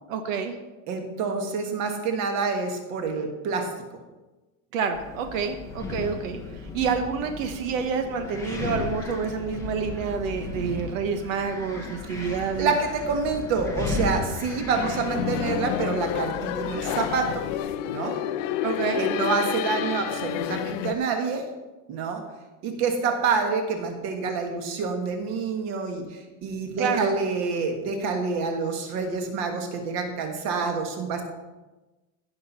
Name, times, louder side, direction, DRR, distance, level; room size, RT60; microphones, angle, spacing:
voice 1, 0.1-0.5 4.7-12.7 18.6-19.1 26.8-27.1, right 6 dB, 60° right, 7 dB, 1.2 m, -28 dB
voice 2, 0.9-3.7 12.2-12.3 12.6-17.4 17.8-18.2 19.0-21.4 21.9-22.2 22.6-31.2, right 4 dB, 35° right, 5 dB, 1.6 m, -27 dB
Wind, 4.9-17.6, left 4 dB, 5° left, 0.9 m, -35 dB
sound 1, 14.7-20.9, left 11 dB, 55° left, 0.7 m, -29 dB
16.0 x 6.2 x 5.5 m, 1.1 s
supercardioid pair, 180°, 45 cm